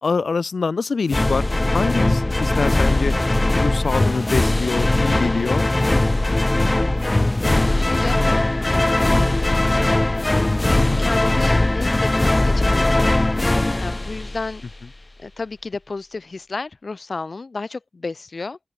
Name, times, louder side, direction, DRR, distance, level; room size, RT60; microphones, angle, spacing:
voice 1, 0.0-1.4 1.7-3.1 3.6-5.7, left 4 dB, 75° left, 1.0 m, -24 dB
sound 1, 1.1-14.7, left 2 dB, 30° left, 0.5 m, -19 dB
voice 2, 7.8-8.3 8.7-9.7 10.6-13.2 13.8-14.6 15.2-18.6, left 3 dB, 60° left, 2.3 m, -32 dB
open air
cardioid pair, 55°, 0 cm